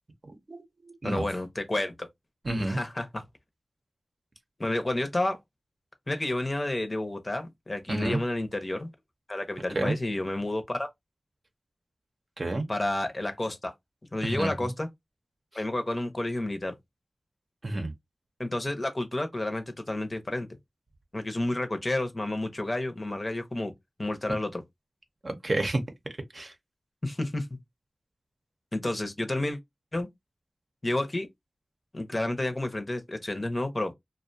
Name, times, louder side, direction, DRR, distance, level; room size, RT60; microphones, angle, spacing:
voice 1, 0.2-1.3 2.4-2.8 7.9-8.2 9.7-9.9 12.4-12.7 14.2-14.7 17.6-17.9 25.2-25.8 26.3-26.5, right 2 dB, 55° right, 0.6 m, -30 dB
voice 2, 1.0-2.1 2.6-3.2 4.6-5.4 6.1-8.9 9.3-10.9 12.7-13.7 14.1-14.9 15.5-16.7 18.4-20.5 21.1-23.7 24.0-24.6 27.0-27.5 28.7-29.6 29.9-30.1 30.8-31.3 31.9-33.9, left 1 dB, 35° left, 0.6 m, -30 dB
2.4 x 2.2 x 2.6 m
cardioid pair, 45°, 0 cm